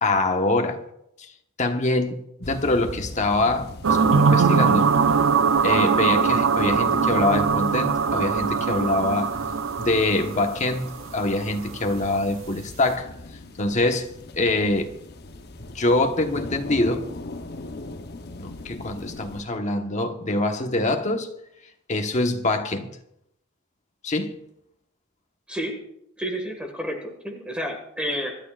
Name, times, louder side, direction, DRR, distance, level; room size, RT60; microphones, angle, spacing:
voice 1, 0.0-0.8 1.2-1.3 1.6-4.9 5.6-9.4 9.8-13.1 13.6-14.1 14.3-14.9 15.7-17.1 18.4-21.3 21.9-22.9 24.0-24.4, left 2 dB, 35° left, 1.2 m, -24 dB
sound 1, 2.4-19.4, left 2 dB, 55° left, 0.9 m, -40 dB
sound 2, 3.8-11.4, right 5 dB, 70° right, 0.5 m, -21 dB
voice 2, 26.2-28.4, equal, 5° right, 1.8 m, -30 dB
25.5 x 12.5 x 2.5 m
head